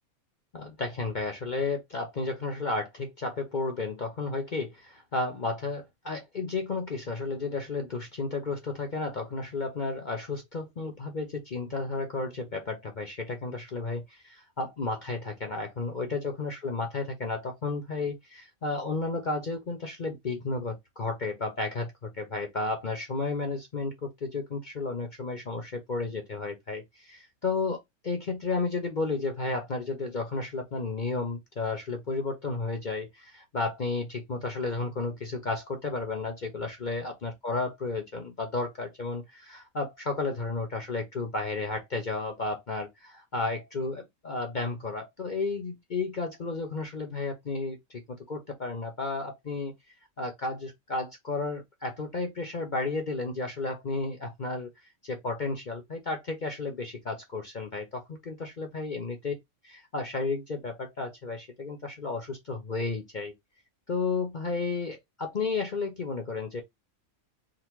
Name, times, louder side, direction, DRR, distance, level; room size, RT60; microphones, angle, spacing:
voice 1, 0.5-27.8 28.0-49.7 50.2-54.7 55.0-59.3 59.6-63.3 63.9-66.6, left 3 dB, 45° left, 0.7 m, -33 dB
3.8 x 2.2 x 4.5 m
omnidirectional pair, 1.5 m